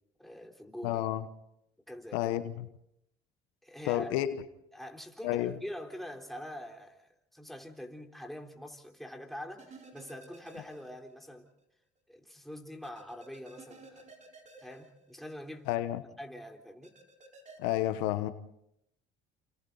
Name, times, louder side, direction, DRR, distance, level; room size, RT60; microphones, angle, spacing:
voice 1, 0.2-1.0 1.9-2.3 3.6-4.1 4.7-11.5 12.1-14.1 14.6-15.7 16.2-16.9, equal, ahead, 3.9 m, -44 dB
voice 2, 0.8-1.2 2.1-2.7 3.9-4.4 5.2-5.5 15.7-16.0 17.6-18.3, left 14 dB, 85° left, 1.2 m, -30 dB
sound 1, 9.6-11.3 11.6-11.7 12.8-15.6 16.8-17.6, right 3 dB, 35° right, 4.6 m, -54 dB
29.0 x 28.0 x 4.1 m
supercardioid pair, 80°, 21 cm